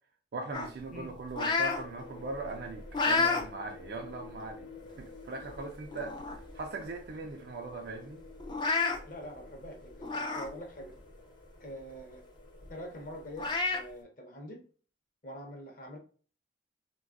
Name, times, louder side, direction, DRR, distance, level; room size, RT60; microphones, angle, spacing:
voice 1, 0.3-4.7 4.9-8.2, right 3 dB, 60° right, 0.4 m, -40 dB
sound 1, 0.5-1.8 2.3-3.4 3.9-4.1 5.0-5.1 5.5-5.6 5.9-6.5 6.8-6.9 7.2-7.3 8.4-9.0 10.0-10.5 10.9-11.0 12.6-12.7 13.4-13.8, left 4 dB, 25° left, 0.3 m, -30 dB
sound 2, 1.7-13.3, left 3 dB, 75° left, 0.9 m, -52 dB
voice 2, 9.0-10.9 11.6-12.2 12.7-14.6 15.2-16.0, equal, 50° left, 0.7 m, -45 dB
3.2 x 2.3 x 2.4 m
head